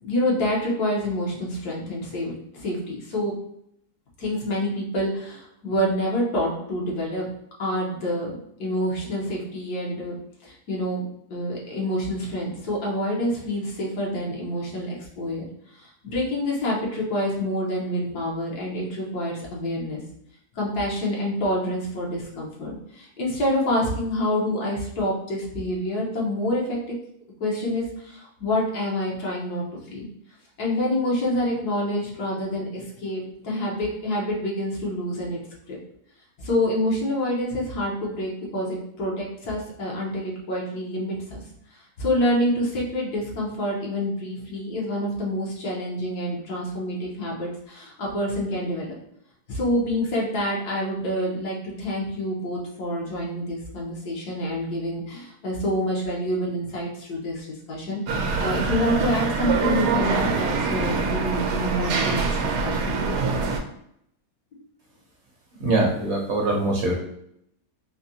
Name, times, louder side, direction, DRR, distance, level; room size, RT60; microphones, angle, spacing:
voice 1, 0.0-3.4 4.2-7.3 7.6-8.3 8.6-10.2 10.4-15.5 15.7-20.0 20.5-26.9 27.4-30.1 30.6-35.4 35.7-35.8 36.4-41.4 41.7-48.9 49.5-62.3 62.6-63.2 64.5-64.6, left 1 dB, 85° left, -3 dB, 1.5 m, -27 dB
sound 1, 58.1-63.6, right 4 dB, 90° right, 1.1 m, -24 dB
voice 2, 65.6-66.9, right 2 dB, 60° right, -1 dB, 0.8 m, -22 dB
4.0 x 2.6 x 2.7 m, 0.74 s
omnidirectional pair, 1.7 m